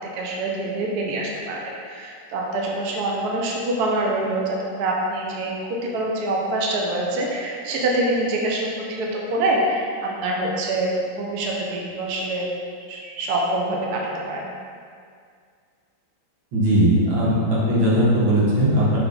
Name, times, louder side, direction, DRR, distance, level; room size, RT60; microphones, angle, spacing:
voice 1, 0.1-1.6 1.8-12.5 12.9-14.5, right 2 dB, 60° right, -2 dB, 1.2 m, -25 dB
voice 2, 16.5-19.0, right 1 dB, 90° right, -8 dB, 2.5 m, -18 dB
5.7 x 5.6 x 3.9 m, 2.2 s
omnidirectional pair, 2.1 m